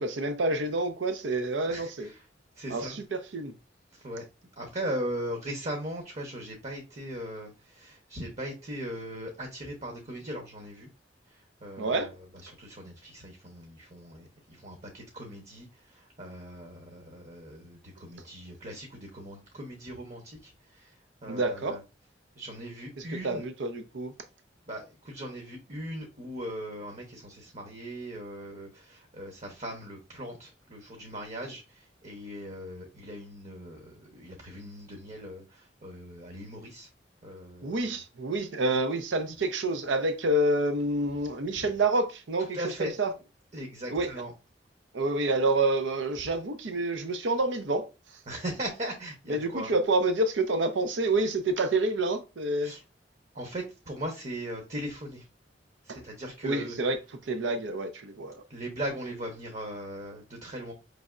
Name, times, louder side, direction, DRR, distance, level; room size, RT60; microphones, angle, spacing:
voice 1, 0.0-2.1 2.7-3.5 11.8-12.2 21.3-21.8 23.0-24.1 37.6-43.1 43.9-44.1 44.9-47.9 49.3-52.7 55.9-56.0 56.4-57.0 57.2-58.4, right 2 dB, 85° right, 0.6 m, -28 dB
voice 2, 1.7-2.2 2.6-3.0 3.9-4.2 4.6-10.9 11.3-11.9 12.4-20.9 21.2-21.8 22.3-23.5 24.7-36.9 37.2-37.8 42.4-42.9 43.5-44.3 48.3-49.7 52.6-52.8 53.3-55.2 55.8-56.8 58.5-60.7, equal, 40° right, 0.9 m, -39 dB
5.2 x 3.3 x 2.4 m
head